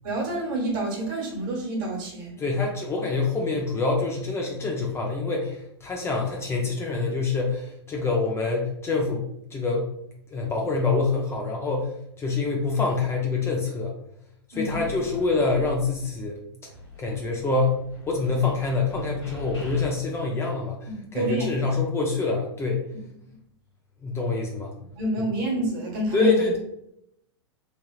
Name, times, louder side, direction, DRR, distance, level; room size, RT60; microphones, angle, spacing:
voice 1, 0.0-2.4 14.5-14.8 20.9-21.7 24.9-26.4, right 1 dB, 50° right, -1 dB, 1.4 m, -28 dB
voice 2, 2.4-9.9 10.3-13.9 14.5-16.4 17.0-17.8 18.1-20.8 21.1-22.8 24.0-24.8 25.2-25.3 26.1-26.6, left 3 dB, 20° left, 0 dB, 0.5 m, -26 dB
sound 1, 14.7-16.3 16.6-19.9, left 1 dB, 85° left, 1.2 m, -41 dB
3.3 x 2.7 x 2.3 m, 0.76 s
hypercardioid pair, 105°, 14 cm